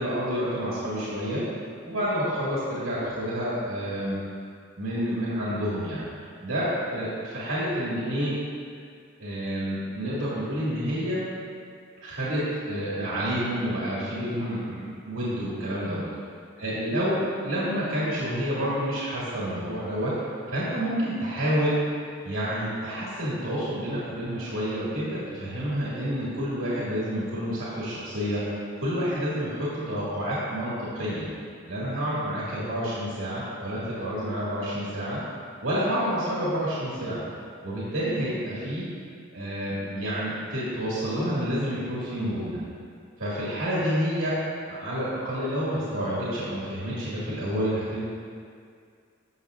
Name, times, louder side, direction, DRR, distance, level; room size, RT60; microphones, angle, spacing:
voice 1, 0.0-1.4 1.9-4.2 4.8-6.0 6.4-8.3 9.2-11.2 12.0-12.4 12.7-16.0 16.6-20.1 20.5-21.7 22.2-28.4 28.8-31.3 31.7-35.2 35.6-37.2 37.6-38.8 39.3-42.6 43.2-44.3 44.7-48.1, equal, 75° right, -9 dB, 2.0 m, -29 dB
12.5 x 6.0 x 2.4 m, 2.2 s
head